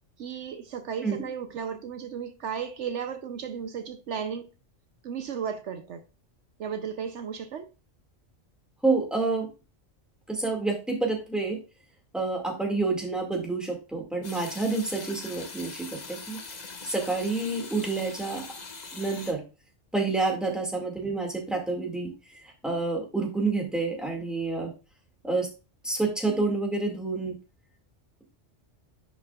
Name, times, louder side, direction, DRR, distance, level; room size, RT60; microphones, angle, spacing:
voice 1, 0.2-4.5 5.0-6.0 6.6-7.7, right 7 dB, 70° right, 1.0 m, -34 dB
voice 2, 8.8-9.5 10.3-11.6 12.1-16.4 16.8-18.5 18.9-19.4 19.9-22.1 22.6-24.7 25.2-25.5 25.8-27.3, right 3 dB, ahead, 2.1 m, -28 dB
sound 1, 14.2-19.3, left 4 dB, 40° left, 1.0 m, -42 dB
10.5 x 5.7 x 2.4 m
omnidirectional pair, 1.3 m